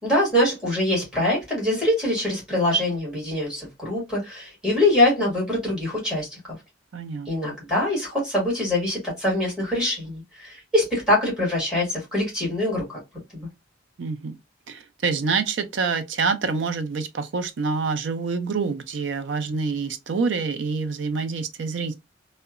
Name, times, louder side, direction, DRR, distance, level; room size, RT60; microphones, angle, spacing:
voice 1, 0.0-6.4 7.2-13.0 13.3-13.5, left 1 dB, 5° right, 1.6 m, -24 dB
voice 2, 6.9-7.6 14.0-14.4 14.7-21.9, right 4 dB, 70° right, 0.4 m, -27 dB
2.7 x 2.1 x 2.4 m
head